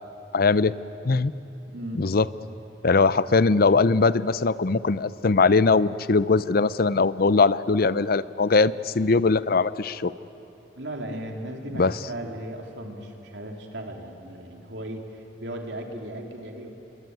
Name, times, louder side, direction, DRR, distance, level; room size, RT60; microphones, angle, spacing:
voice 1, 0.3-0.7 1.0-1.3 2.0-2.2 2.8-10.1 11.7-11.9, left 4 dB, 55° left, 17 dB, 0.6 m, -21 dB
voice 2, 1.7-2.1 2.9-3.3 10.7-16.7, right 1 dB, 75° right, 2 dB, 3.2 m, -37 dB
27.5 x 22.5 x 9.4 m, 3.0 s
head